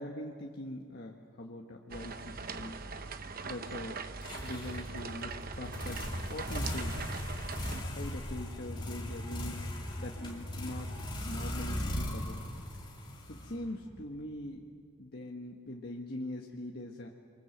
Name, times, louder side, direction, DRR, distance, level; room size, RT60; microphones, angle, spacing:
voice 1, 0.0-2.8 3.4-4.0 4.4-6.0 6.3-7.0 7.7-12.5 13.3-14.7 15.0-17.1, left 1 dB, 50° left, 0 dB, 1.5 m, -42 dB
sound 1, 1.9-7.8, right 4 dB, 45° right, 1.0 m, -41 dB
sound 2, 4.2-14.0, left 1 dB, 25° left, 3.1 m, -38 dB
28.5 x 23.5 x 8.0 m, 2.2 s
head